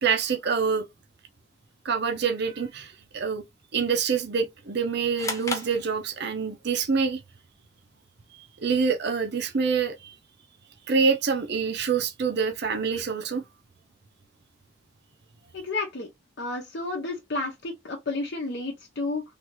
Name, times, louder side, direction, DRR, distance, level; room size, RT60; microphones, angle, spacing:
voice 1, 0.0-0.8 1.8-3.4 3.7-7.2 8.6-10.1 10.9-13.4, right 5 dB, 50° right, 0.6 m, -26 dB
sound 1, 5.2-6.6, left 3 dB, 15° left, 0.6 m, -34 dB
voice 2, 15.5-16.1 16.4-19.2, left 3 dB, 55° left, 0.7 m, -31 dB
3.3 x 2.5 x 3.0 m
head